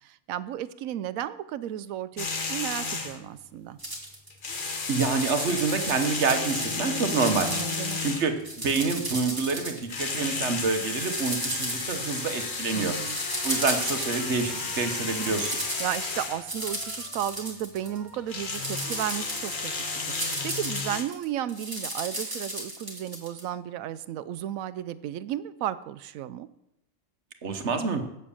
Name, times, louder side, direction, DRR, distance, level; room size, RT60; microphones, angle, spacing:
voice 1, 0.0-3.8 7.4-8.1 12.7-13.2 15.8-26.5, right 11 dB, 80° right, 15 dB, 1.0 m, -34 dB
sound 1, 2.2-3.3 4.3-8.5 9.8-16.4 18.1-21.0, left 4 dB, 40° left, 1.2 m, -32 dB
sound 2, 3.8-4.3 4.7-6.8 7.1-8.1 8.4-10.5 11.0-12.6 13.1-14.7 15.0-18.1 18.4-23.4, right 1 dB, 15° right, 1.9 m, -35 dB
voice 2, 4.9-7.6 8.0-13.0 13.4-15.6 27.4-28.0, right 4 dB, 55° right, 7 dB, 1.3 m, -27 dB
Trumpet, 13.1-20.5, equal, 20° left, 2.9 m, -48 dB
8.1 x 7.6 x 7.1 m, 0.85 s
omnidirectional pair, 1.4 m